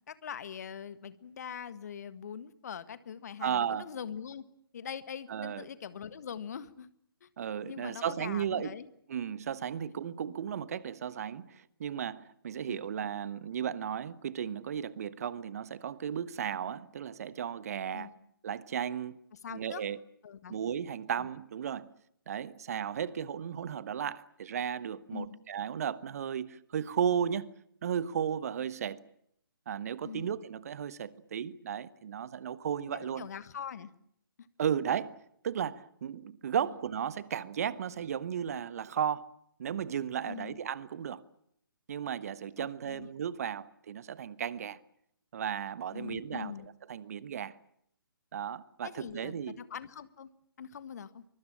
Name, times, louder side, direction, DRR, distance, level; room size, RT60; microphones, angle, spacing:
voice 1, 0.1-4.4 4.7-6.9 7.2-7.3 7.6-8.9 9.8-9.9 12.7-12.8 17.9-18.1 19.3-19.8 20.2-20.6 21.2-21.3 25.1-25.4 30.0-30.3 32.9-33.9 36.6-36.8 40.2-40.6 42.6-43.1 45.9-46.7 48.8-50.3 50.6-51.2, left 7 dB, 45° left, 1.7 m, -43 dB
voice 2, 3.4-3.9 5.3-5.6 7.4-8.7 9.1-18.1 18.4-19.2 19.5-20.0 20.5-21.9 22.3-27.5 27.8-29.0 29.7-33.3 34.6-39.3 39.6-41.2 41.9-44.8 45.3-46.5 46.9-47.5 48.3-49.6, right 8 dB, 40° right, 1.3 m, -35 dB
24.0 x 23.0 x 8.8 m
figure-of-eight pair, 135°, 12 cm